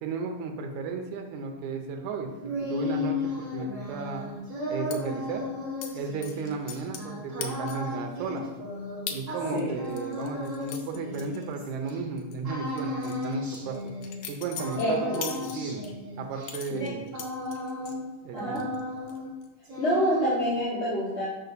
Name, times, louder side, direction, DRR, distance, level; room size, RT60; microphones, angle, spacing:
voice 1, 0.0-4.4 4.7-5.4 5.9-8.5 9.1-13.9 14.3-15.8 16.2-17.1 18.2-18.6, right 4 dB, 80° right, 3 dB, 2.1 m, -34 dB
sound 1, 2.1-12.0 12.4-14.3 14.6-18.1 18.3-19.3 19.6-20.6, left 2 dB, 50° right, 0.9 m, -35 dB
sound 2, 4.9-5.0 5.8-5.9 6.2-7.1 7.4-7.9 8.4-8.5 9.1-9.2 9.6-11.9 12.2-12.4 12.8-15.9 16.4-18.0 18.4-18.8 19.1-19.5, left 7 dB, 75° left, 1.4 m, -40 dB
voice 2, 14.8-15.5 16.8-16.9 18.3-18.6 19.8-21.3, equal, 35° left, -9 dB, 1.1 m, -27 dB
5.6 x 5.1 x 4.0 m, 1.2 s
omnidirectional pair, 3.4 m